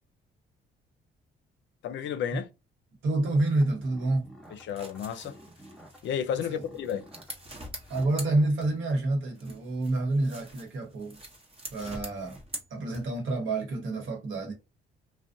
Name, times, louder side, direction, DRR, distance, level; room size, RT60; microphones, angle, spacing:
voice 1, 1.8-2.5 4.5-5.3 6.0-7.0, left 8 dB, 70° left, 0.5 m, -32 dB
voice 2, 3.0-4.3 6.5-6.6 7.9-11.2 11.7-12.4 12.7-14.5, right 2 dB, 75° right, 1.1 m, -28 dB
sound 1, 3.2-8.5, equal, ahead, 0.6 m, -53 dB
sound 2, 4.5-9.0 9.4-13.3, right 1 dB, 30° right, 0.8 m, -45 dB
2.5 x 2.1 x 2.6 m
cardioid pair, 90°, 20 cm